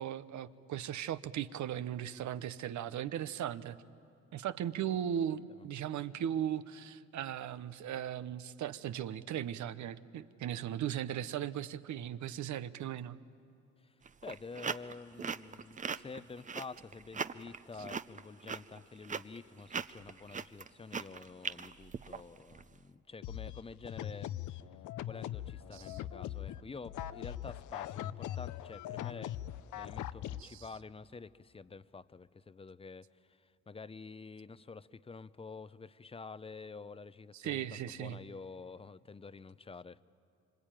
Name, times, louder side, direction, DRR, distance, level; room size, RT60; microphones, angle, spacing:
voice 1, 0.0-3.8 4.3-13.2 25.7-26.0 30.4-30.6 37.3-38.2, right 10 dB, 70° right, 14 dB, 0.9 m, -37 dB
sound 1, 14.0-22.6, right 5 dB, 25° right, 0.6 m, -40 dB
voice 2, 14.2-24.3 25.0-29.4 29.8-40.0, left 4 dB, 20° left, 16 dB, 0.6 m, -49 dB
sound 2, 23.2-30.4, left 12 dB, 80° left, 0.7 m, -41 dB
26.0 x 25.5 x 9.0 m, 2.7 s
cardioid pair, 90°, 30 cm